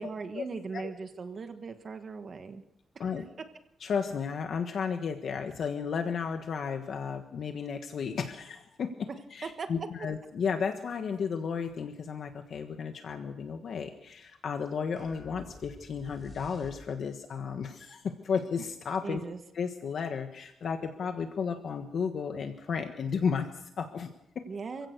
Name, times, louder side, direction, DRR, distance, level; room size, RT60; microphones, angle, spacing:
voice 1, 0.0-2.6 2.9-3.2 9.4-9.7 19.0-19.4 24.5-24.9, right 5 dB, 40° right, 7 dB, 1.4 m, -39 dB
voice 2, 3.8-19.2 19.5-24.4, left 6 dB, 55° left, 5 dB, 1.4 m, -33 dB
sound 1, 15.0-17.2, left 1 dB, 5° left, 7.1 m, -49 dB
27.5 x 16.0 x 6.7 m, 0.85 s
wide cardioid pair, 160°, 0 cm